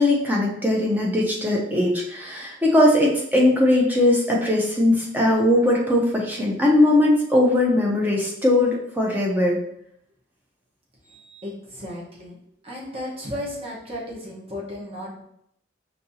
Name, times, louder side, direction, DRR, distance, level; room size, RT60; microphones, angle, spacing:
voice 1, 0.0-9.6, left 1 dB, 10° right, -2 dB, 0.7 m, -20 dB
voice 2, 11.4-12.4 12.6-15.2, left 1 dB, 30° right, -5 dB, 1.2 m, -34 dB
5.3 x 2.8 x 2.7 m, 0.74 s
head